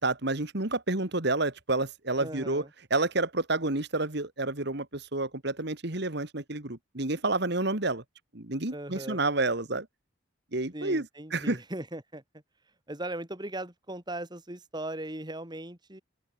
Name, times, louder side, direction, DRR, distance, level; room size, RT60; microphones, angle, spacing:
voice 1, 0.0-8.0 8.3-9.9 10.5-11.6, right 2 dB, 55° right, 2.3 m, -29 dB
voice 2, 2.2-2.7 8.7-9.2 10.7-12.2 12.9-16.0, right 1 dB, 20° right, 3.0 m, -38 dB
open air
head